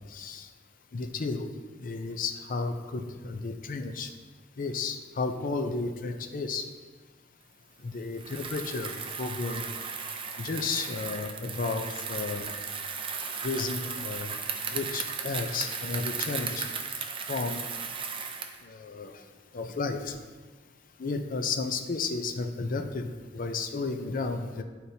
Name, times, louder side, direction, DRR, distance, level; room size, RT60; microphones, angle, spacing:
voice 1, 0.1-0.5 0.9-1.5 1.8-4.1 4.6-6.7 7.8-8.9 9.2-9.7 10.4-12.5 13.4-14.3 14.7-16.7 17.3-17.6 18.6-19.1 19.5-20.2 21.0-24.6, left 4 dB, 45° left, 7 dB, 0.5 m, -32 dB
Bicycle, 8.1-18.6, right 5 dB, 30° right, 0.5 m, -36 dB
11.5 x 4.3 x 2.7 m, 1.4 s
head